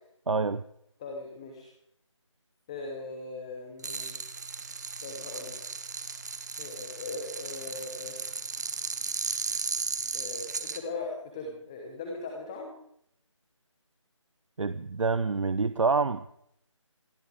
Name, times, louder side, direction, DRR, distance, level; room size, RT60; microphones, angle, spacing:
voice 1, 0.3-0.6 14.6-16.2, right 4 dB, 75° right, 14 dB, 0.7 m, -27 dB
voice 2, 1.0-1.7 2.7-4.1 5.0-5.6 6.6-8.1 10.1-12.7, left 3 dB, 10° left, 2 dB, 1.0 m, -39 dB
sound 1, 3.8-10.8, right 4 dB, 35° right, 1.1 m, -35 dB
27.0 x 11.5 x 3.6 m, 0.73 s
figure-of-eight pair, 170°, 16 cm